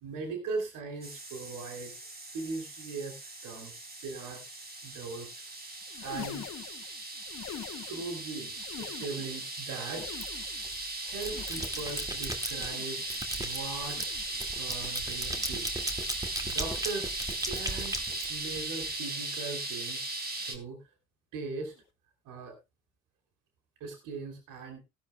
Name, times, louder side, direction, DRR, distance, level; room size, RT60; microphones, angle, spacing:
voice 1, 0.0-2.1 2.3-4.4 4.8-5.6 6.0-6.5 7.9-10.3 11.0-14.1 14.6-16.0 16.4-17.1 17.4-20.1 20.4-20.9 21.3-21.7 22.2-22.6 23.8-24.8, right 4 dB, 60° right, 3 dB, 3.2 m, -40 dB
sound 1, 1.0-20.6, right 2 dB, 25° right, 3.7 m, -38 dB
sound 2, 5.8-8.2 8.5-9.5 9.8-10.8 11.2-12.0 12.5-13.2 13.8-14.4 15.1-15.7 16.4-17.0 17.8-18.2 19.1-19.4 20.4-20.6 21.8-21.9, left 10 dB, 50° left, 1.5 m, -46 dB
sound 3, 10.2-10.7 11.1-12.7 13.1-18.9, right 1 dB, 10° right, 2.2 m, -37 dB
18.0 x 12.0 x 2.3 m, 0.25 s
hypercardioid pair, 55°, 35 cm